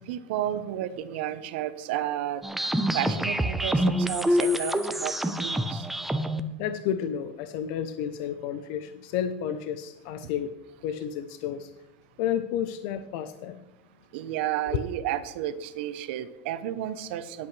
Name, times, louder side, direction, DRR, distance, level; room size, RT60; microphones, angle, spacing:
voice 1, 0.1-2.4 2.9-5.1 5.4-5.8 14.1-17.5, right 12 dB, 65° right, 13 dB, 0.9 m, -32 dB
sound 1, 2.4-6.4, equal, 5° right, 0.7 m, -26 dB
voice 2, 6.6-10.5 10.8-11.7 12.2-13.6 14.7-14.8, left 9 dB, 55° left, 10 dB, 0.7 m, -31 dB
17.5 x 8.4 x 3.3 m, 0.98 s
supercardioid pair, 145°, 6 cm